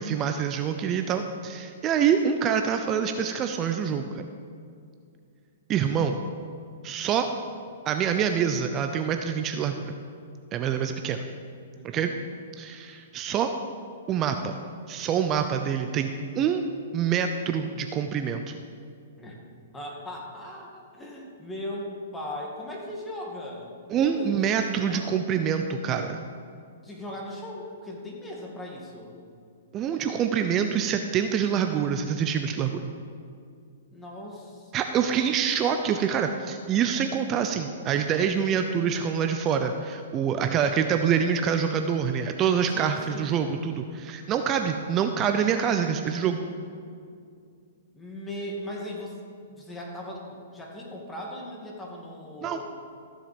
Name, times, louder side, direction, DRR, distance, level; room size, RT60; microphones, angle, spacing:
voice 1, 0.0-4.2 5.7-6.2 6.8-7.3 7.9-10.0 10.5-11.2 11.9-12.1 12.6-13.5 14.1-14.5 14.9-16.7 16.9-18.5 23.9-26.2 29.7-32.8 34.7-46.4 52.4-52.6, right 7 dB, 25° right, 6 dB, 0.6 m, -26 dB
voice 2, 11.7-12.2 19.2-19.4 19.7-25.2 26.6-29.2 33.9-35.1 40.3-40.7 42.7-43.4 47.9-49.2 49.5-52.6, left 1 dB, 10° left, -2 dB, 2.2 m, -39 dB
14.5 x 7.3 x 5.2 m, 2.3 s
hypercardioid pair, 140°, 0 cm